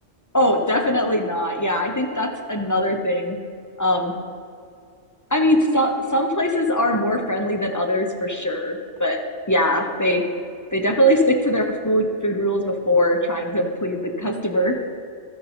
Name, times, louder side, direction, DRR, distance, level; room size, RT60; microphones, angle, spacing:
voice 1, 0.3-3.4 3.8-4.1 5.3-9.2 9.5-10.3 10.7-14.8, equal, 25° left, 3 dB, 0.4 m, -21 dB
14.0 x 5.5 x 4.3 m, 2.3 s
omnidirectional pair, 1.3 m